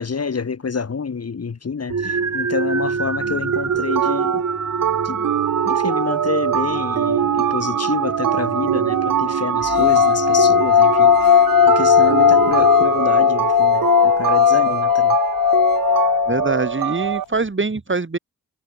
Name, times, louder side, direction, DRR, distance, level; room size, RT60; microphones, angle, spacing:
voice 1, 0.0-4.4 5.0-5.2 5.6-15.2, left 5 dB, 45° left, 1.3 m, -27 dB
sound 1, 1.9-13.9, right 5 dB, 50° right, 2.7 m, -26 dB
sound 2, 3.5-17.2, right 10 dB, 70° right, 0.6 m, -23 dB
sound 3, 9.7-16.8, left 10 dB, 75° left, 0.8 m, -16 dB
voice 2, 16.3-18.2, right 3 dB, 35° right, 2.7 m, -23 dB
wide cardioid pair, 75°, 35 cm